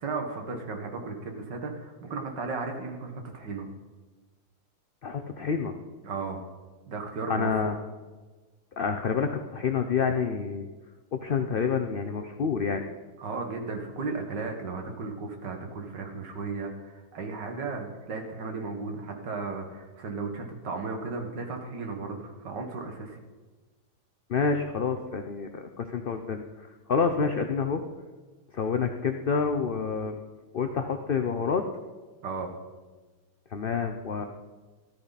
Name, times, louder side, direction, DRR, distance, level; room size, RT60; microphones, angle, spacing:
voice 1, 0.0-3.7 6.0-6.4 6.9-7.7 13.2-23.2 32.2-32.5, right 4 dB, 80° right, 3 dB, 2.2 m, -35 dB
voice 2, 5.0-5.7 7.3-7.8 8.8-10.7 11.1-12.8 24.3-26.4 26.9-27.8 28.5-30.2 30.5-31.6 33.5-34.2, left 5 dB, 60° left, 6 dB, 0.5 m, -28 dB
13.5 x 13.5 x 4.1 m, 1.3 s
omnidirectional pair, 1.9 m